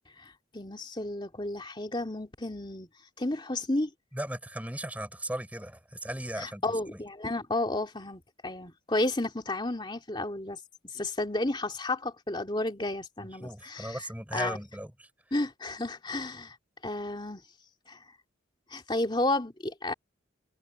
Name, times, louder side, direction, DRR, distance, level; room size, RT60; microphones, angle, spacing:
voice 1, 0.2-2.9 3.2-3.9 6.4-10.6 10.9-14.6 15.3-16.5 16.8-17.4 17.9-18.0 18.7-19.9, left 2 dB, 25° left, 2.6 m, -32 dB
voice 2, 4.1-6.6 6.9-7.0 13.4-15.1, right 1 dB, 10° right, 6.1 m, -37 dB
head